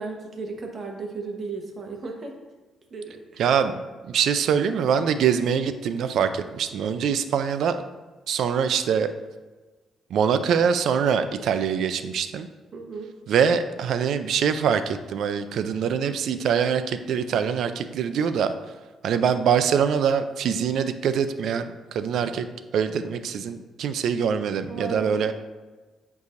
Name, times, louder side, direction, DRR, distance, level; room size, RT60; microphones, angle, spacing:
voice 1, 0.0-2.3 2.9-3.4 12.7-13.1 24.7-25.3, right 3 dB, 45° right, 2 dB, 1.1 m, -35 dB
voice 2, 3.4-3.8 4.1-7.8 8.3-9.1 10.1-12.5 13.3-18.5 19.0-22.5 22.7-25.3, right 7 dB, 70° right, 10 dB, 0.4 m, -24 dB
8.2 x 4.7 x 2.6 m, 1.3 s
cardioid pair, 100°, 0 cm